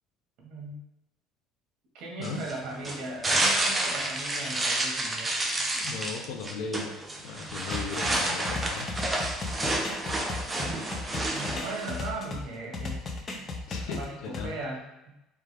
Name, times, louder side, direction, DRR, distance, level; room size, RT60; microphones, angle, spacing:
voice 1, 0.4-0.8 1.9-5.4 10.5-13.0 13.3-13.5 13.9-15.1, right 2 dB, 60° right, -2 dB, 1.5 m, -38 dB
sound 1, 2.2-12.1, right 1 dB, 15° right, 0.6 m, -30 dB
voice 2, 5.7-8.9 13.7-14.6, left 5 dB, 75° left, 2 dB, 0.7 m, -37 dB
sound 2, 7.7-12.4 12.7-14.5, left 3 dB, 30° left, 0.6 m, -35 dB
3.6 x 3.5 x 3.4 m, 0.93 s
cardioid pair, 135°, 0 cm